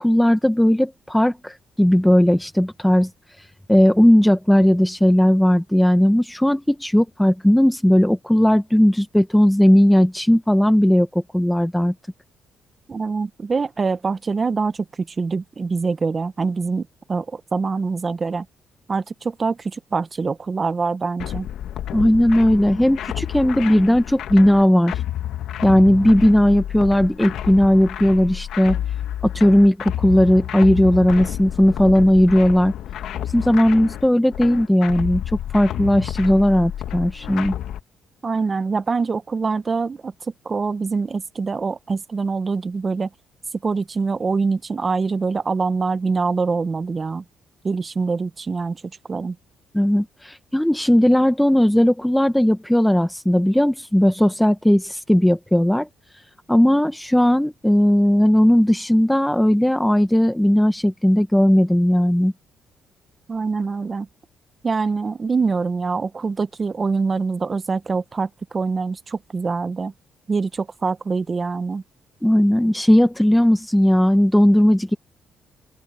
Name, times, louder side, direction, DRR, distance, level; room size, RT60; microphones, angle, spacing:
voice 1, 0.0-3.1 3.7-11.9 21.9-25.0 25.6-28.8 29.2-32.7 33.3-37.5 49.7-55.9 56.5-62.3 72.2-74.9, equal, 5° left, 1.0 m, -17 dB
voice 2, 12.9-18.4 18.9-21.5 38.2-40.1 40.4-43.1 43.6-47.2 47.6-48.8 49.1-49.4 63.3-64.1 64.6-69.9 70.3-71.8, right 4 dB, 35° right, 1.1 m, -24 dB
sound 1, 21.2-37.8, left 11 dB, 75° left, 1.4 m, -30 dB
open air
cardioid pair, 90°, 0 cm